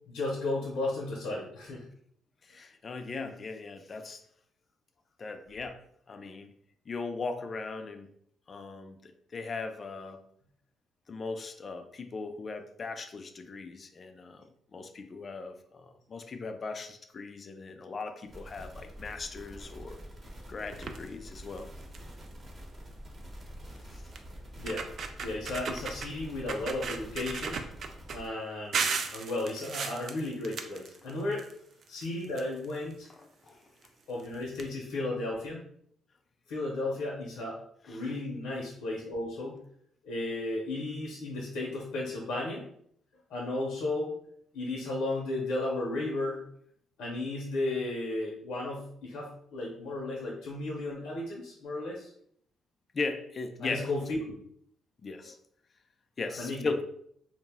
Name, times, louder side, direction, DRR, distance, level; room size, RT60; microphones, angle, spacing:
voice 1, 0.1-1.8 24.6-24.9 25.2-27.6 28.1-31.4 31.9-33.1 34.1-35.6 36.5-37.6 37.8-39.6 40.0-42.7 43.3-44.1 44.5-46.4 47.0-52.1 53.6-54.4 56.4-56.7, left 2 dB, 85° left, -3 dB, 0.6 m, -34 dB
voice 2, 2.4-4.2 5.2-5.8 6.1-6.5 6.9-8.1 8.5-10.2 11.1-20.0 20.5-21.7 23.9-24.0 33.4-33.7 37.8-38.0 52.9-53.9 55.0-55.4 56.2-56.8, left 4 dB, 40° left, 7 dB, 0.4 m, -38 dB
sound 1, 18.3-28.3, equal, 35° right, 0.8 m, -46 dB
sound 2, 20.7-21.1 21.6-21.7 21.9-22.2 23.4-23.5 24.1-24.2 24.6-26.1 26.5-28.2 28.7-31.5 31.8-32.9 33.8-33.9 34.2-34.3 34.5-34.6, right 5 dB, 60° right, 0.3 m, -35 dB
2.5 x 2.0 x 3.5 m, 0.67 s
cardioid pair, 90°, 0 cm